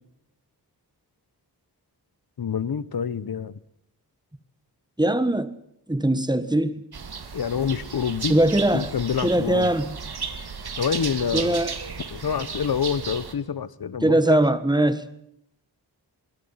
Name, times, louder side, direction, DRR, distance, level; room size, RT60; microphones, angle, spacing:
voice 1, 2.4-3.6 7.3-8.3 8.7-9.7 10.8-11.6 12.1-14.4, left 7 dB, 60° left, 1.1 m, -27 dB
voice 2, 5.0-5.5 5.9-6.8 8.3-8.9 9.2-10.0 11.3-11.7 14.0-15.0, right 1 dB, 10° right, 1.6 m, -21 dB
sound 1, 6.9-13.3, right 5 dB, 65° right, 2.4 m, -34 dB
27.0 x 21.5 x 5.8 m
wide cardioid pair, 80°, 41 cm